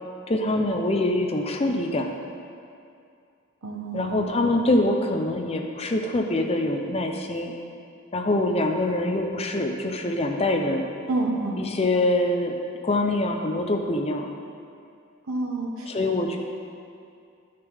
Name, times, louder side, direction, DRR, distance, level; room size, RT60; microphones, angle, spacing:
voice 1, 0.3-2.1 3.9-7.5 8.1-10.9 11.6-12.5 12.8-14.3 15.9-16.4, left 1 dB, 30° left, 3 dB, 0.6 m, -24 dB
voice 2, 3.6-4.2 11.1-11.6 15.3-15.9, right 2 dB, 85° right, 0 dB, 1.2 m, -28 dB
12.0 x 6.6 x 3.6 m, 2.4 s
head